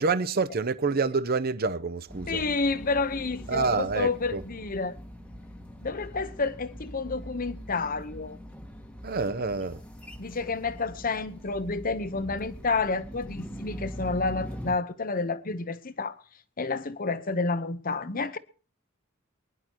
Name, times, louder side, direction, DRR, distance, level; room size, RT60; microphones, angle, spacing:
voice 1, 0.0-2.4 3.5-4.4 9.0-9.8, right 4 dB, 50° right, 0.8 m, -27 dB
sound 1, 2.1-14.7, equal, 5° left, 1.7 m, -42 dB
voice 2, 2.3-5.0 5.8-8.4 10.2-16.2 16.6-18.4, left 3 dB, 45° left, 1.0 m, -30 dB
23.5 x 11.0 x 3.0 m
head